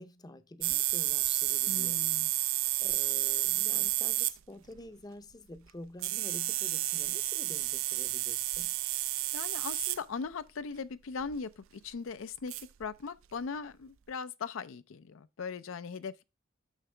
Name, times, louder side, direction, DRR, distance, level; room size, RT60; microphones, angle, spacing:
voice 1, 0.0-2.0 2.5-8.7, left 1 dB, 20° left, 0.6 m, -48 dB
sound 1, 0.6-4.3 4.8-4.9 6.0-10.0 11.2-11.4 12.5-12.8, right 17 dB, 85° right, 0.4 m, -31 dB
voice 2, 1.7-2.3 9.3-16.2, left 5 dB, 85° left, 0.5 m, -39 dB
6.4 x 5.9 x 3.2 m
head